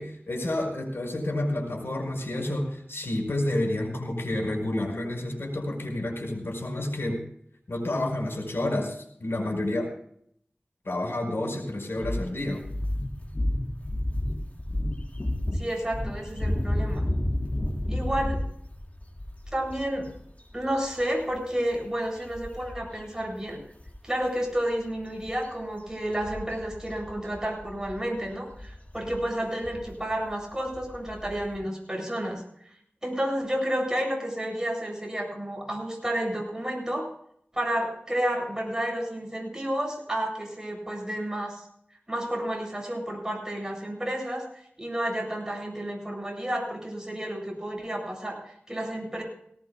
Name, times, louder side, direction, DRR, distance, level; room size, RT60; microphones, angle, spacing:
voice 1, 0.0-7.2 7.7-9.9 10.8-12.6, left 1 dB, 80° left, 2 dB, 5.1 m, -29 dB
sound 1, 12.0-23.1 23.3-23.5 23.8-31.6, left 1 dB, 40° left, 4.0 m, -32 dB
voice 2, 15.5-17.0 17.9-18.4 19.5-20.1 20.5-23.6 24.0-32.4 33.0-37.1 37.5-41.6 42.1-44.4 44.8-49.2, right 1 dB, 15° right, 0 dB, 7.8 m, -31 dB
19.0 x 18.5 x 2.3 m, 0.66 s
wide cardioid pair, 55°, 4 cm